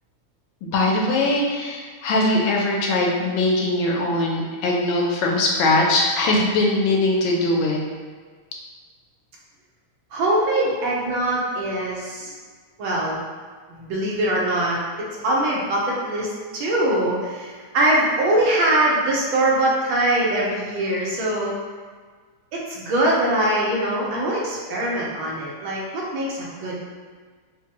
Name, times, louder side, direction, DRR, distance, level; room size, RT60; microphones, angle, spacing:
voice 1, 0.6-7.8, left 2 dB, 85° left, -1 dB, 1.4 m, -21 dB
voice 2, 10.1-12.3 12.8-13.2 13.7-21.6 22.5-26.8, right 1 dB, 85° right, -4 dB, 1.6 m, -22 dB
4.4 x 2.2 x 2.8 m, 1.5 s
omnidirectional pair, 2.1 m